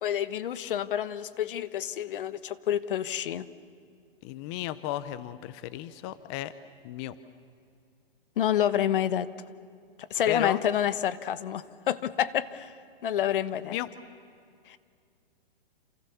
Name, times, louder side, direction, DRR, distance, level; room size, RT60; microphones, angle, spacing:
voice 1, 0.0-3.5 8.4-9.3 10.1-12.7 13.0-13.8 14.7-14.8, left 10 dB, 65° left, 15 dB, 1.2 m, -28 dB
voice 2, 4.2-6.5 6.8-7.2 10.3-10.6 13.7-13.9, left 14 dB, 30° left, 15 dB, 0.7 m, -34 dB
28.5 x 28.0 x 7.1 m, 2.4 s
hypercardioid pair, 150°, 29 cm